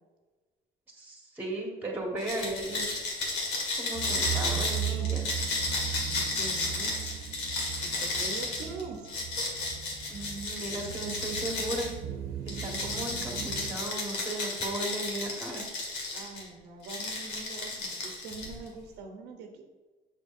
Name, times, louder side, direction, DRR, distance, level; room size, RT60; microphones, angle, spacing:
voice 1, 1.0-2.9 3.8-5.3 10.1-11.9 12.4-15.6, right 1 dB, 10° right, 0 dB, 1.4 m, -36 dB
sound 1, 2.2-11.9 12.5-16.4 16.8-18.7, left 3 dB, 90° left, 1.7 m, -33 dB
sound 2, 3.9-13.7, right 11 dB, 60° right, 0.4 m, -37 dB
voice 2, 6.1-7.1 7.8-9.0 16.1-19.6, right 4 dB, 85° right, 4 dB, 0.8 m, -43 dB
6.3 x 6.0 x 2.5 m, 1.3 s
cardioid pair, 110°, 17 cm